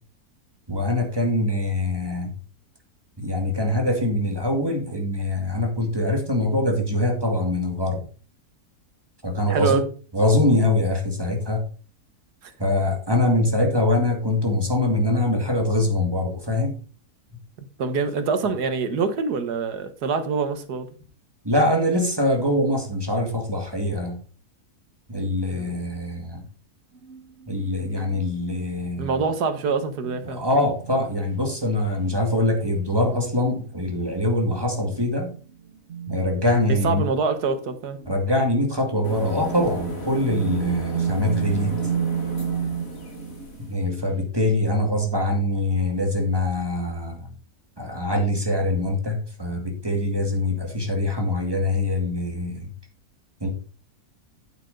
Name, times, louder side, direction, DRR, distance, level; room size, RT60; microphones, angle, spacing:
voice 1, 0.7-2.3 3.2-8.0 9.2-9.9 10.1-11.6 12.6-16.8 21.4-24.2 25.1-26.4 27.5-29.1 30.2-35.3 36.1-37.1 38.0-41.8 43.7-47.3 47.8-52.7 53.4-53.5, left 1 dB, 15° right, 2.1 m, -23 dB
voice 2, 9.5-9.8 12.4-12.5 17.8-20.9 25.5-25.8 29.0-30.4 36.7-38.0, right 5 dB, 85° right, 1.7 m, -25 dB
sound 1, 26.9-31.3 32.4-32.6 33.6-34.1 34.5-35.0 35.4-37.0 37.2-38.1 38.9-39.0 39.3-44.3, right 8 dB, 50° right, 1.1 m, -32 dB
sound 2, 39.0-43.8, left 1 dB, 60° left, 2.6 m, -36 dB
9.0 x 7.9 x 3.9 m
omnidirectional pair, 1.7 m